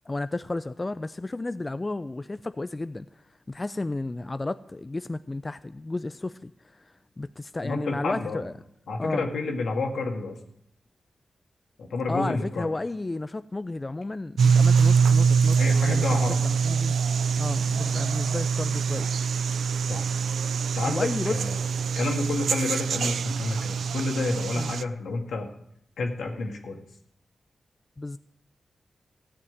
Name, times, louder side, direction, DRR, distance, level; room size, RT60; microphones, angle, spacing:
voice 1, 0.1-8.5 9.0-9.3 12.1-17.0 17.4-19.1 20.8-21.4 24.5-24.7 28.0-28.2, left 2 dB, 30° left, 12 dB, 0.5 m, -33 dB
voice 2, 7.6-8.4 8.9-10.4 11.8-12.7 15.6-16.5 19.9-20.1 20.7-21.6 21.9-25.5 26.0-26.8, left 3 dB, 85° left, 2 dB, 2.2 m, -30 dB
sound 1, 14.4-24.8, right 6 dB, 85° right, 0.4 m, -24 dB
14.5 x 6.1 x 9.5 m, 0.73 s
cardioid pair, 50°, 0 cm